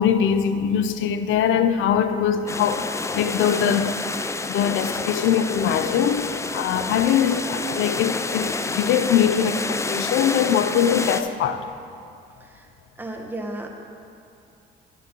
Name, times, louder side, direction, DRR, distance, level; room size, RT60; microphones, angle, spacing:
voice 1, 0.0-3.9 4.4-11.7, left 8 dB, 80° left, 0.6 m, -22 dB
sound 1, 2.5-11.2, left 3 dB, 15° left, 0.3 m, -29 dB
voice 2, 13.0-13.7, right 1 dB, 10° right, 1.0 m, -33 dB
10.5 x 9.5 x 3.0 m
cardioid pair, 90°, 20 cm